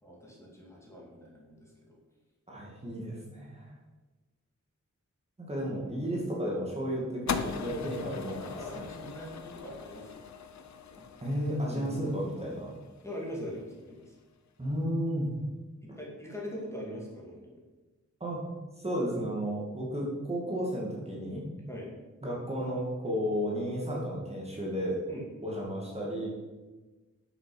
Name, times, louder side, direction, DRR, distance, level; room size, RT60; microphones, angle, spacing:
voice 1, 0.0-2.0 8.4-10.2 10.9-11.1 11.7-12.1 13.0-14.1 15.8-17.6 21.7-21.9 25.1-25.3, equal, 10° left, -4 dB, 2.4 m, -42 dB
voice 2, 2.5-3.7 5.5-8.8 11.2-12.7 14.6-15.3 18.2-18.4 18.8-21.5 22.2-25.0 25.4-26.3, equal, 20° right, -4 dB, 2.3 m, -33 dB
sound 1, 7.3-13.6, left 6 dB, 65° left, 0.8 m, -40 dB
9.8 x 7.3 x 6.0 m, 1.2 s
wide cardioid pair, 175°, 30 cm